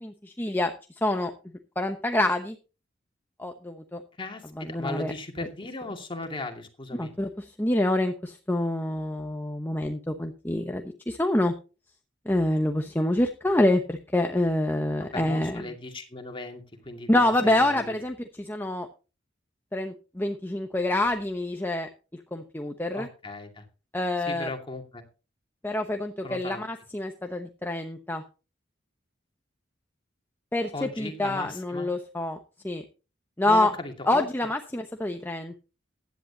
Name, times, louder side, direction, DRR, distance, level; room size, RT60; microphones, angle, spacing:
voice 1, 0.0-0.7 1.0-1.3 1.8-2.6 3.4-4.0 4.6-5.1 7.0-11.5 12.3-15.6 17.1-18.9 19.7-21.9 22.3-23.1 23.9-24.5 25.6-28.2 30.5-32.4 32.6-32.8 33.4-33.7 34.1-35.6, left 1 dB, 10° left, 5 dB, 0.9 m, -26 dB
voice 2, 4.2-7.1 15.0-18.0 22.9-23.6 24.3-25.0 26.2-26.6 30.7-31.9 33.5-34.3, left 2 dB, 30° left, 4 dB, 2.4 m, -37 dB
16.0 x 10.5 x 2.9 m, 0.32 s
head